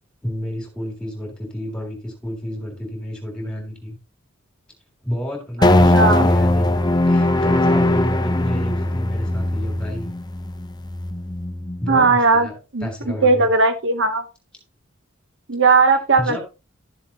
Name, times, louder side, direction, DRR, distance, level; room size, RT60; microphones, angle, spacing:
voice 1, 0.2-4.0 5.0-6.8 7.1-10.1 11.8-12.5 12.8-13.5 16.2-16.4, equal, 5° left, 1 dB, 3.3 m, -30 dB
sound 1, 5.6-12.1, left 1 dB, 20° left, 0.6 m, -19 dB
voice 2, 5.6-6.3 11.9-14.2 15.5-16.4, right 3 dB, 60° right, 8 dB, 1.0 m, -18 dB
12.5 x 7.1 x 2.9 m, 0.30 s
head